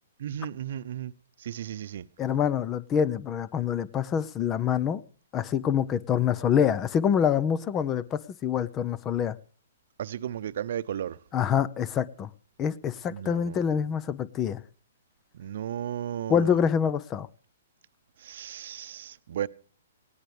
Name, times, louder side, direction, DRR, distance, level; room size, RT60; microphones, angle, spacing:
voice 1, 0.2-1.1 1.4-2.0 10.0-11.2 13.1-13.7 15.3-16.6 18.2-19.5, right 10 dB, 60° right, 0.9 m, -34 dB
voice 2, 2.2-5.0 5.3-9.4 11.3-12.3 12.6-14.6 16.3-17.3, left 8 dB, 25° left, 0.8 m, -26 dB
20.0 x 16.5 x 3.3 m
hypercardioid pair, 125°, 0 cm